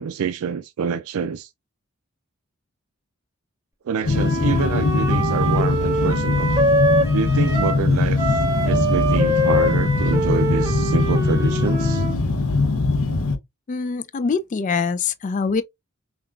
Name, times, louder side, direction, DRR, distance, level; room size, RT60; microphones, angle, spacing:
voice 1, 0.0-1.5 3.8-6.5 7.1-8.2 8.6-12.1, right 6 dB, 75° right, 0.4 m, -26 dB
sound 1, 4.0-13.4, left 3 dB, 70° left, 0.6 m, -21 dB
Wind instrument woodwind instrument, 4.1-7.8 8.2-12.2, right 1 dB, 15° right, 1.2 m, -24 dB
voice 2, 13.7-15.6, left 5 dB, 35° left, 0.3 m, -24 dB
5.7 x 2.3 x 2.4 m
head